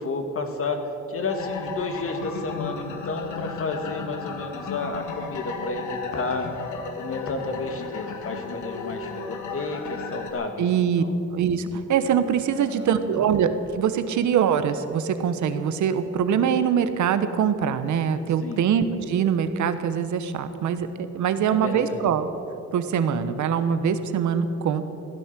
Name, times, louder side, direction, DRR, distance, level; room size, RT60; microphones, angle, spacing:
voice 1, 0.0-6.5 6.9-11.1 12.5-13.2 18.4-18.6 21.5-22.0, left 3 dB, 45° left, 5 dB, 2.1 m, -31 dB
sound 1, 1.3-10.3, left 5 dB, 80° left, 1.8 m, -35 dB
voice 2, 10.6-11.0 11.3-20.9 21.1-22.3 22.7-24.8, right 8 dB, 70° right, 10 dB, 1.2 m, -23 dB
16.0 x 11.0 x 7.6 m, 2.9 s
cardioid pair, 90°, 30 cm